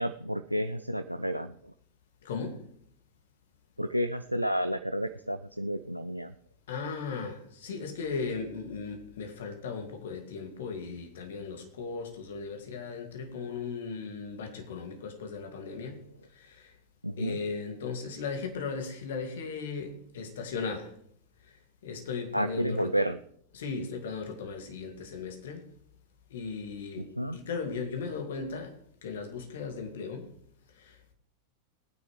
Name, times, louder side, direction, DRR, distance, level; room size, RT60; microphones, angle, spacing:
voice 1, 0.0-1.7 3.8-6.3 17.0-17.4 22.3-23.2 27.2-27.4, equal, 90° right, 0.4 m, -31 dB
voice 2, 2.2-2.6 6.7-16.0 16.3-16.8 17.2-20.9 21.4-22.9 23.5-25.7 26.3-30.3 30.7-31.1, left 5 dB, 60° left, 2.4 m, -37 dB
20.5 x 9.6 x 3.3 m
figure-of-eight pair, 90°, 0 cm